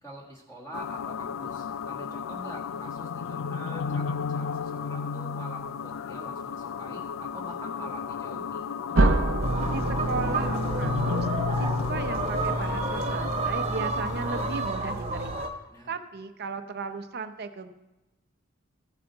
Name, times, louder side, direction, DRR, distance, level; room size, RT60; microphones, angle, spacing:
voice 1, 0.0-8.7 15.7-15.9, right 1 dB, 15° left, -2 dB, 1.6 m, -45 dB
sound 1, 0.7-14.7, left 6 dB, 85° left, 0.4 m, -34 dB
sound 2, 8.9-13.7, right 2 dB, 90° right, 0.7 m, -29 dB
sound 3, 9.4-15.5, right 1 dB, 30° right, 1.3 m, -29 dB
voice 2, 9.7-11.3 11.6-15.5 15.9-17.7, right 4 dB, 55° right, 9 dB, 0.7 m, -36 dB
15.0 x 8.8 x 4.0 m, 1.0 s
head